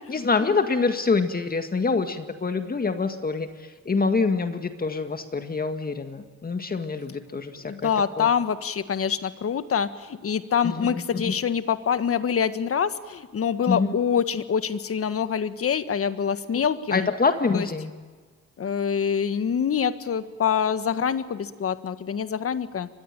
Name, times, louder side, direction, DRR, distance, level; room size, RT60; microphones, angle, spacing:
voice 1, 0.1-7.9 8.2-8.3 10.6-11.4 13.7-14.0 16.9-17.9 22.8-22.9, left 4 dB, 30° left, 7 dB, 1.9 m, -26 dB
voice 2, 7.6-17.1 17.5-17.7 18.6-22.9, left 7 dB, 50° left, 12 dB, 1.6 m, -25 dB
24.0 x 21.5 x 9.1 m, 1.4 s
cardioid pair, 90°, 30 cm